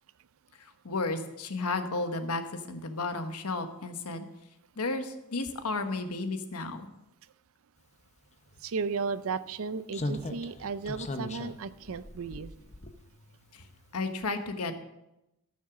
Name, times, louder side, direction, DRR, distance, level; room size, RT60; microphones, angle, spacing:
voice 1, 0.8-4.2 4.8-6.9 13.5-13.6 13.9-14.7, left 3 dB, 90° left, 8 dB, 1.1 m, -33 dB
Slam, 8.5-8.6 9.9-13.4 13.7-13.9, left 1 dB, 30° left, 0.8 m, -38 dB
voice 2, 8.6-12.5, right 5 dB, 65° right, 14 dB, 0.5 m, -34 dB
13.5 x 6.3 x 6.1 m, 0.91 s
head